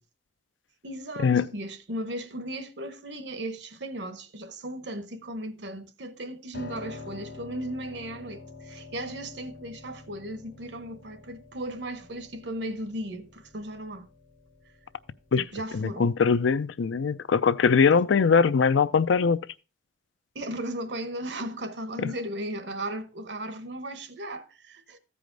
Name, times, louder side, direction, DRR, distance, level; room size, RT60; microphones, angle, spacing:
voice 1, 0.8-14.1 15.4-16.2 20.3-25.0, right 1 dB, 70° right, 1.0 m, -36 dB
Piano, 6.5-16.5, left 3 dB, 70° left, 1.6 m, -47 dB
voice 2, 15.7-19.4, left 5 dB, 85° left, 0.5 m, -21 dB
14.5 x 5.0 x 3.8 m
head